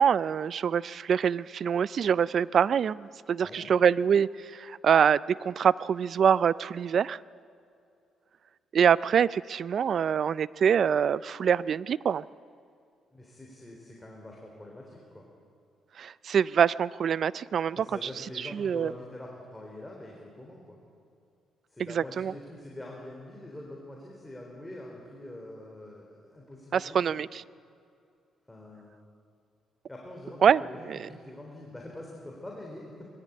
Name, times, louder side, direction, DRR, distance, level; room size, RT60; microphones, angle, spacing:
voice 1, 0.0-7.2 8.7-12.2 16.0-18.1 18.4-18.9 21.9-22.3 26.7-27.4 30.4-30.6 30.9-31.0, right 7 dB, 55° right, 19 dB, 0.4 m, -25 dB
voice 2, 3.4-3.7 13.1-15.3 17.8-20.8 21.7-27.2 28.5-28.9 29.9-33.1, left 1 dB, 10° left, -2 dB, 3.7 m, -44 dB
20.5 x 15.5 x 8.6 m, 2.4 s
cardioid pair, 90°, 0 cm